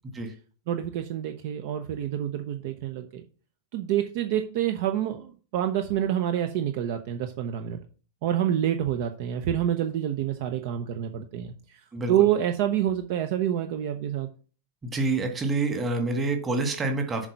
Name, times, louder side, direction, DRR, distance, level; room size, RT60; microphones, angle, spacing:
voice 1, 0.7-3.2 3.7-7.8 8.2-14.3, right 11 dB, 50° right, 7 dB, 0.8 m, -27 dB
voice 2, 14.8-17.3, right 3 dB, 20° right, 4 dB, 1.8 m, -27 dB
7.3 x 4.8 x 5.5 m, 0.39 s
figure-of-eight pair, 90°, 0 cm